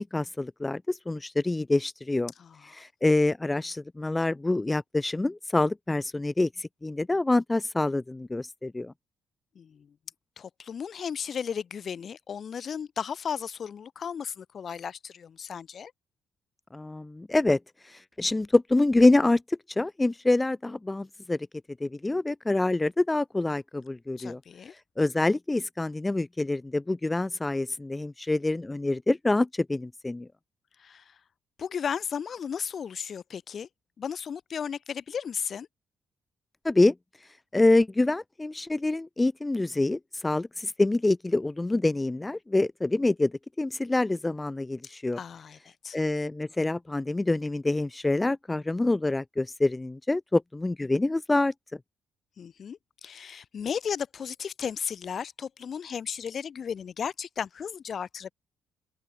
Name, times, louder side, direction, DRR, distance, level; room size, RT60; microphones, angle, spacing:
voice 1, 0.0-2.3 2.7-8.9 16.7-21.5 21.8-24.4 25.0-30.3 36.6-36.9 37.5-45.2 45.9-51.5, left 2 dB, 15° left, 2.5 m, -26 dB
voice 2, 2.4-2.8 9.5-9.9 10.4-15.9 24.2-24.7 30.8-31.2 31.6-33.7 34.0-35.7 45.2-46.0 52.4-58.3, left 7 dB, 50° left, 5.1 m, -35 dB
open air
cardioid pair, 90°, 0 cm